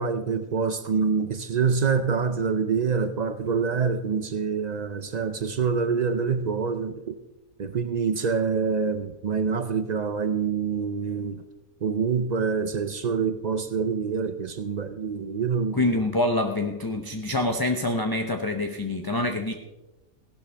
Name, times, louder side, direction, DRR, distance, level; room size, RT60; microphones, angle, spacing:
voice 1, 0.0-7.2 7.6-11.4 11.8-15.8, right 5 dB, 75° right, 9 dB, 0.3 m, -26 dB
voice 2, 15.7-19.5, left 2 dB, 25° left, 4 dB, 0.4 m, -26 dB
16.5 x 12.0 x 3.4 m, 1.1 s
omnidirectional pair, 1.5 m